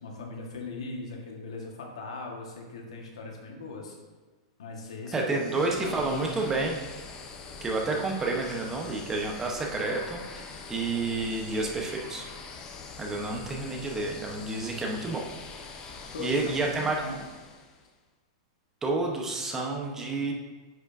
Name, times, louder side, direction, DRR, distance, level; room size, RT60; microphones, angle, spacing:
voice 1, 0.0-3.9 4.6-6.0 13.0-13.6 16.1-17.2, left 3 dB, 90° left, 0 dB, 1.5 m, -40 dB
voice 2, 5.1-6.8 7.6-12.2 13.0-15.2 16.2-17.0 18.8-20.3, right 3 dB, 15° right, 0 dB, 0.9 m, -30 dB
sound 1, 5.2-17.9, left 4 dB, 25° left, 0.7 m, -44 dB
9.2 x 5.0 x 2.7 m, 1.3 s
supercardioid pair, 145°, 3 cm